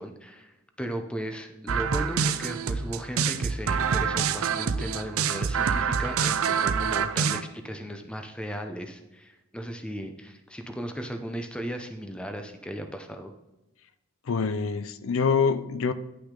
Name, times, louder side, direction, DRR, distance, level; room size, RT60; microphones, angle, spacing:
voice 1, 0.0-13.3, equal, 5° left, 0.6 m, -36 dB
sound 1, 1.7-7.4, right 6 dB, 70° right, 0.5 m, -26 dB
voice 2, 14.3-15.9, left 5 dB, 65° left, 0.5 m, -25 dB
10.0 x 6.0 x 3.8 m
head